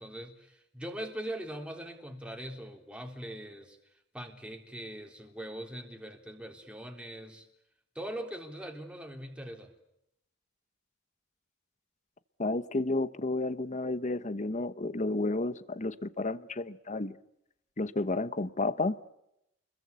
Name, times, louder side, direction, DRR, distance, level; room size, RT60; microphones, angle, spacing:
voice 1, 0.0-3.8 4.1-7.5 8.0-9.7, right 1 dB, 5° right, 3 dB, 3.5 m, -41 dB
voice 2, 12.4-17.1 17.8-19.0, left 2 dB, 40° left, 14 dB, 1.0 m, -31 dB
29.5 x 22.0 x 8.2 m, 0.81 s
head